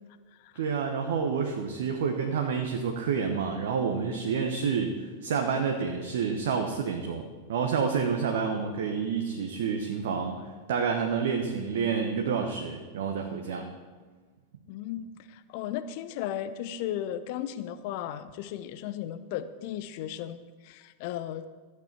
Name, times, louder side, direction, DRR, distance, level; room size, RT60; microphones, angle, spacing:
voice 1, 0.5-10.4 10.7-13.7, right 6 dB, 60° right, 3 dB, 1.1 m, -29 dB
voice 2, 14.7-21.5, left 11 dB, 45° left, 12 dB, 0.6 m, -35 dB
14.0 x 8.4 x 4.7 m, 1.4 s
figure-of-eight pair, 90°, 0 cm